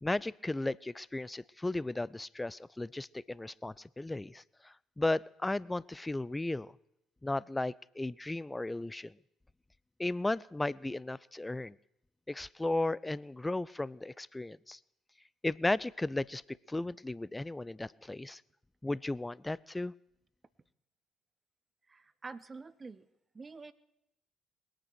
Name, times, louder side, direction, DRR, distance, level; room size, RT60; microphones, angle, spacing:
voice 1, 0.0-6.7 7.2-9.1 10.0-11.7 12.3-14.8 15.4-16.4 16.7-18.4 18.8-19.9, left 2 dB, 15° left, 22 dB, 0.4 m, -35 dB
voice 2, 21.9-23.1 23.3-23.7, right 4 dB, 30° right, 16 dB, 0.9 m, -47 dB
21.0 x 8.9 x 6.3 m, 0.82 s
figure-of-eight pair, 50°, 0 cm